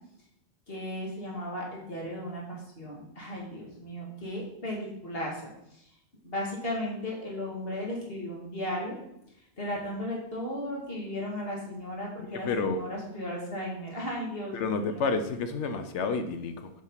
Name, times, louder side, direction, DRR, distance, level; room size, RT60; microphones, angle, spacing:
voice 1, 0.7-5.4 5.7-5.9 6.2-9.0 9.6-15.1, left 1 dB, 55° left, -3 dB, 2.8 m, -35 dB
voice 2, 12.3-12.8 14.5-16.7, left 4 dB, 85° left, 8 dB, 1.1 m, -30 dB
7.6 x 6.4 x 5.7 m, 0.79 s
omnidirectional pair, 1.2 m